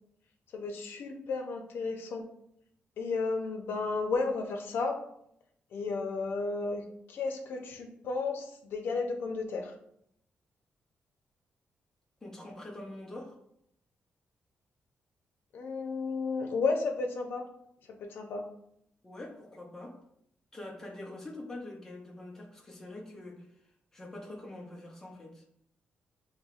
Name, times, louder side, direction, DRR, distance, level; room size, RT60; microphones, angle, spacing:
voice 1, 0.5-2.3 3.0-5.0 5.7-6.8 7.1-9.7 15.5-17.5 17.9-18.4, left 4 dB, 75° left, 4 dB, 0.8 m, -33 dB
voice 2, 12.2-13.4 19.0-20.0 20.5-23.5 23.9-25.4, left 1 dB, 10° left, -2 dB, 0.9 m, -44 dB
6.4 x 3.3 x 2.5 m, 0.74 s
wide cardioid pair, 175°, 4 cm